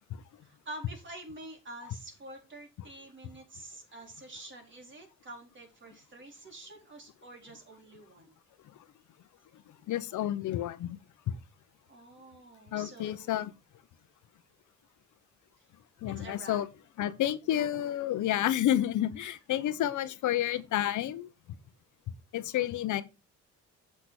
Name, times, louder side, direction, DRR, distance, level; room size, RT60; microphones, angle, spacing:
voice 1, 0.4-8.3 11.9-13.3 16.2-16.6 19.2-19.3, right 1 dB, 40° right, 4.3 m, -47 dB
voice 2, 9.9-11.0 11.3-11.4 12.7-13.5 16.0-16.7 17.0-21.3 22.3-23.0, left 12 dB, 75° left, 1.0 m, -30 dB
8.2 x 6.9 x 4.4 m
cardioid pair, 90°, 30 cm